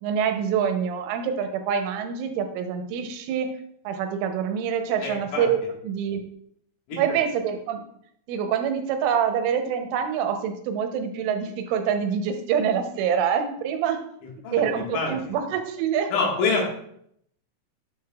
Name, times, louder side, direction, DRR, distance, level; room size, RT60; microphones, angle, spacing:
voice 1, 0.0-3.5 3.8-5.6 5.8-6.2 7.0-7.8 8.3-14.0 14.5-16.1, right 7 dB, 85° right, 6 dB, 3.3 m, -25 dB
voice 2, 5.0-5.5 6.9-7.0 14.4-14.6 14.9-15.1 16.1-16.7, left 4 dB, 80° left, -1 dB, 4.0 m, -25 dB
9.5 x 6.6 x 2.3 m, 0.70 s
omnidirectional pair, 5.5 m